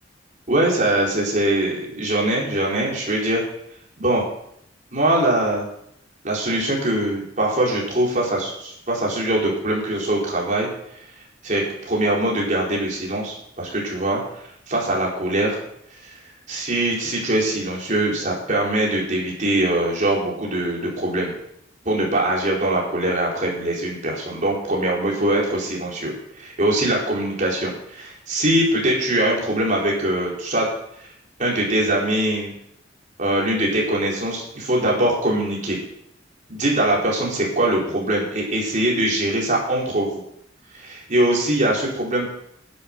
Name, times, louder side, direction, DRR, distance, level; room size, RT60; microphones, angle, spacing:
voice 1, 0.5-3.4 4.0-4.3 4.9-5.7 6.2-10.7 11.4-14.2 14.7-15.6 16.5-21.3 21.8-30.7 31.0-31.1 31.4-32.5 33.2-35.8 36.5-40.2 40.7-42.3, right 1 dB, 45° right, -3 dB, 4.5 m, -22 dB
11.0 x 10.5 x 6.1 m, 0.73 s
head